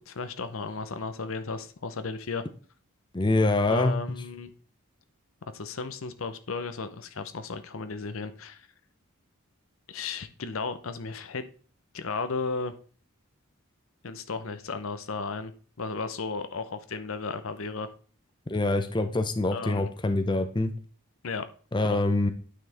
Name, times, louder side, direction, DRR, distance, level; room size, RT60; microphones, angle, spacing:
voice 1, 0.0-2.5 3.7-4.5 5.5-8.7 9.9-11.4 11.9-12.7 14.0-15.5 15.8-17.9 19.5-19.9 21.2-21.5 21.8-22.0, left 4 dB, 70° left, 10 dB, 0.7 m, -34 dB
voice 2, 3.1-3.9 18.5-20.7 21.7-22.3, left 2 dB, 20° left, 8 dB, 0.6 m, -25 dB
9.3 x 5.8 x 3.4 m, 0.41 s
head